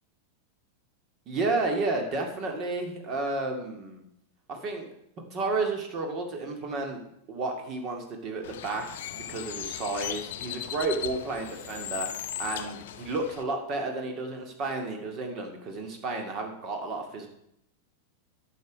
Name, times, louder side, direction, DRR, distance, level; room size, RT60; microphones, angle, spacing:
voice 1, 1.3-4.0 4.5-4.9 5.3-7.0 7.3-12.1 12.4-17.3, right 3 dB, 35° right, 3 dB, 2.1 m, -32 dB
Bird, 8.4-13.4, left 11 dB, 55° left, 0.6 m, -37 dB
10.5 x 6.7 x 5.4 m, 0.76 s
figure-of-eight pair, 90°, 0 cm